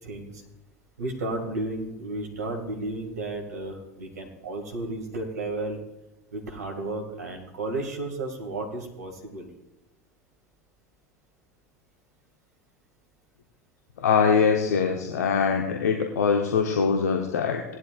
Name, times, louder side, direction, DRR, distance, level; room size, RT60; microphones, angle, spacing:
voice 1, 0.0-0.5 1.0-5.8 6.3-9.5, right 2 dB, 80° right, 1 dB, 2.1 m, -33 dB
voice 2, 14.0-17.6, left 6 dB, 75° left, 3 dB, 1.0 m, -23 dB
18.0 x 11.0 x 2.5 m, 0.95 s
figure-of-eight pair, 75°, 9 cm